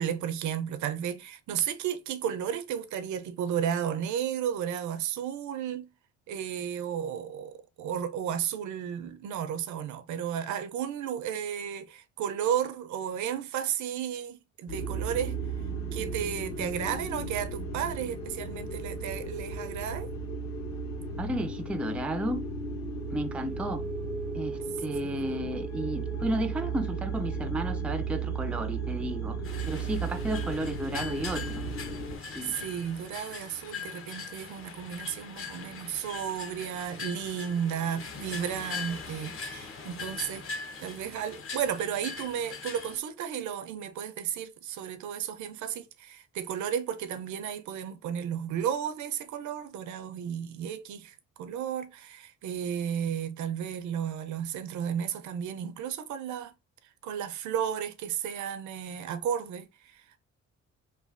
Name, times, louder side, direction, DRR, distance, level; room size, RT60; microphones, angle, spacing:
voice 1, 0.0-5.9 6.3-15.4 15.9-20.1 25.0-25.7 32.4-40.4 40.8-56.5 57.0-60.2, right 9 dB, 70° right, 0.5 m, -33 dB
sound 1, 14.7-32.2, right 3 dB, 65° left, 1.4 m, -35 dB
voice 2, 21.2-22.4 23.1-23.8 24.3-29.4 29.7-31.7 32.4-32.5, right 1 dB, 5° right, 0.3 m, -33 dB
sound 2, 29.4-43.0, left 5 dB, 45° left, 0.8 m, -41 dB
3.1 x 2.2 x 2.5 m
cardioid pair, 90°, 30 cm